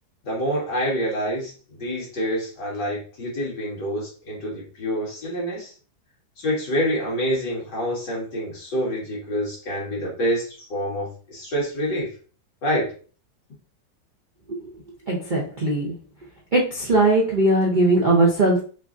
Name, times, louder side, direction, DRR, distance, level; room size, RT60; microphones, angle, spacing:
voice 1, 0.2-5.7 6.4-12.1 12.6-12.9, equal, 60° left, -5 dB, 2.5 m, -27 dB
voice 2, 15.1-15.9 16.5-18.6, right 2 dB, 70° right, -3 dB, 0.4 m, -19 dB
5.7 x 2.4 x 2.6 m, 0.39 s
omnidirectional pair, 2.1 m